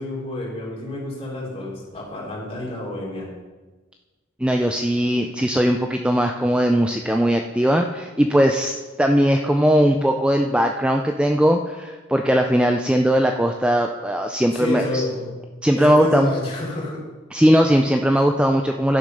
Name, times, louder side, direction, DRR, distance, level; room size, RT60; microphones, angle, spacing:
voice 1, 0.0-3.3 14.5-15.3 15.7-17.0, left 2 dB, 30° left, -5 dB, 3.1 m, -29 dB
voice 2, 4.4-15.0 15.6-16.3 17.3-19.0, equal, 5° right, 4 dB, 0.4 m, -19 dB
11.5 x 6.7 x 5.3 m, 1.3 s
head